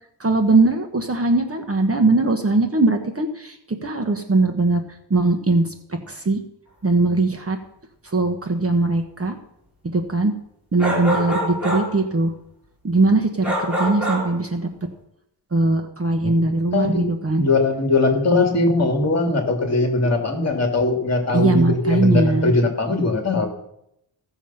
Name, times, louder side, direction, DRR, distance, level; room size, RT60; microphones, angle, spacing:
voice 1, 0.2-4.8 5.1-6.4 6.8-7.6 8.1-9.4 9.8-10.3 10.7-12.3 12.8-14.7 15.5-17.4 21.3-22.5, right 2 dB, 30° right, 4 dB, 1.2 m, -20 dB
sound 1, 10.8-12.0 13.4-14.4, equal, 5° right, 4.1 m, -24 dB
voice 2, 16.7-23.5, left 2 dB, 35° left, 3 dB, 2.7 m, -20 dB
16.0 x 7.1 x 5.7 m, 0.77 s
wide cardioid pair, 115°, 46 cm